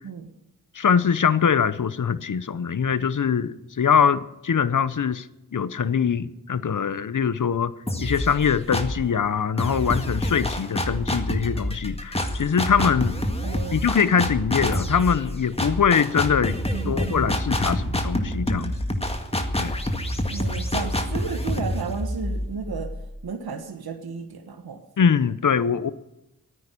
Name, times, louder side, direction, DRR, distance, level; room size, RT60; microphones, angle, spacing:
voice 1, 0.7-5.3 5.5-7.7 8.0-13.2 13.7-18.8 19.5-19.8 25.0-25.9, left 7 dB, 55° left, 16 dB, 0.9 m, -23 dB
sound 1, 7.9-9.1 9.6-23.3, left 1 dB, 15° left, 1.9 m, -27 dB
voice 2, 13.4-13.8 14.2-14.3 16.7-17.3 20.3-22.9 23.2-24.8, right 5 dB, 75° right, 6 dB, 1.4 m, -33 dB
13.5 x 9.5 x 9.9 m, 0.91 s
cardioid pair, 45°, 38 cm